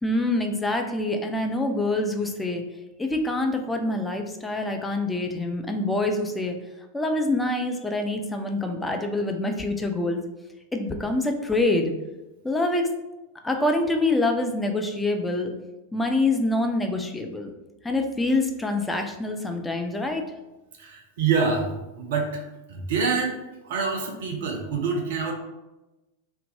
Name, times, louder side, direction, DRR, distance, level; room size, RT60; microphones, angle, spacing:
voice 1, 0.0-2.6 3.0-6.6 6.9-10.2 10.7-11.9 12.4-12.9 13.4-15.5 15.9-17.5 17.8-20.2, left 2 dB, 10° left, 4 dB, 0.3 m, -25 dB
voice 2, 20.8-22.4 22.7-25.3, right 5 dB, 55° right, 2 dB, 0.4 m, -26 dB
2.5 x 2.1 x 2.7 m, 1.0 s
figure-of-eight pair, 90°, 0 cm